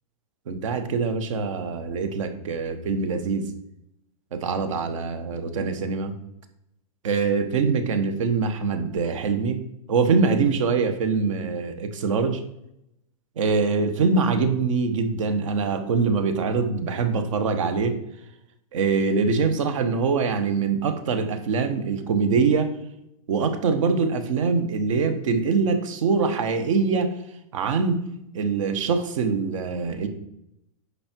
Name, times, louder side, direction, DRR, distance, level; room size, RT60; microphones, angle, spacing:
voice 1, 0.5-3.5 4.3-6.2 7.0-9.6 9.9-12.4 13.4-18.0 18.7-22.7 23.3-27.1 27.5-28.0 28.3-30.1, right 4 dB, 60° right, 9 dB, 1.4 m, -23 dB
9.9 x 5.7 x 4.6 m, 0.81 s
supercardioid pair, 165°, 19 cm